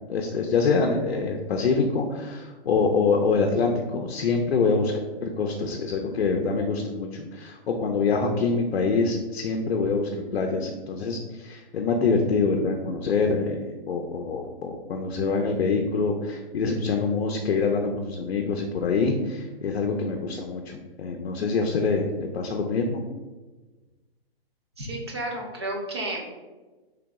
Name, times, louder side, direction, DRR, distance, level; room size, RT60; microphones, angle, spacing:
voice 1, 0.1-4.9 5.2-23.0, left 4 dB, 75° left, 2 dB, 0.6 m, -25 dB
voice 2, 24.8-26.3, right 1 dB, 25° right, 0 dB, 0.5 m, -32 dB
3.4 x 2.9 x 3.5 m, 1.2 s
hypercardioid pair, 170°, 31 cm